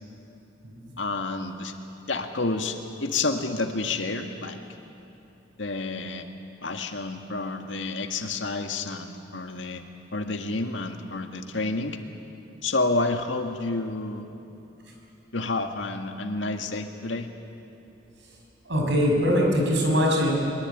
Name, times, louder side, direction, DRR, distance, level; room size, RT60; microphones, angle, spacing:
voice 1, 1.0-1.7 2.1-4.6 5.6-6.3 6.6-9.8 10.1-12.0 12.6-14.3 15.3-17.3, left 3 dB, 75° left, 5 dB, 1.7 m, -29 dB
voice 2, 18.7-20.3, equal, 65° right, 0 dB, 6.1 m, -21 dB
23.0 x 22.5 x 9.1 m, 2.9 s
head